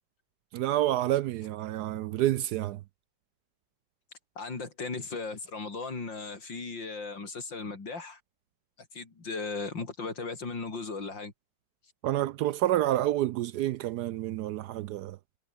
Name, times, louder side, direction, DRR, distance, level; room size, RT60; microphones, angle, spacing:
voice 1, 0.5-2.8 12.0-15.2, right 13 dB, 70° right, 1.0 m, -28 dB
voice 2, 4.4-8.2 8.9-11.3, left 4 dB, 80° left, 4.7 m, -37 dB
omnidirectional pair, 2.0 m